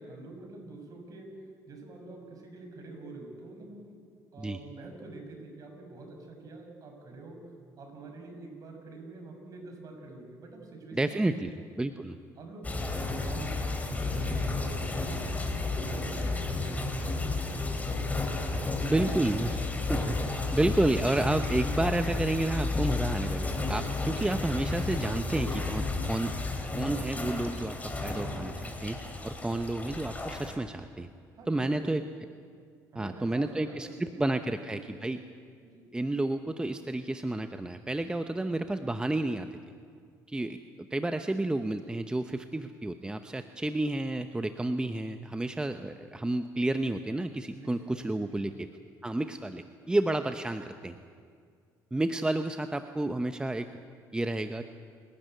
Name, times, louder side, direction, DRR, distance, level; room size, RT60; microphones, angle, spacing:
voice 1, 0.0-4.0 4.3-11.6 12.4-19.3 31.3-31.9 32.9-35.2 35.6-35.9 47.5-48.6, right 2 dB, 50° right, 3 dB, 6.4 m, -46 dB
voice 2, 10.9-11.5 11.8-12.2 18.8-19.6 19.9-26.4 26.7-29.0 29.2-31.1 31.5-32.0 33.0-35.2 35.9-39.5 40.3-40.6 40.9-48.5 49.0-51.0 51.9-53.7 54.1-54.6, right 2 dB, 10° right, 8 dB, 0.9 m, -30 dB
sound 1, 12.6-30.6, left 3 dB, 20° left, 3.4 m, -32 dB
28.0 x 12.5 x 9.2 m, 2.2 s
supercardioid pair, 90°, 8 cm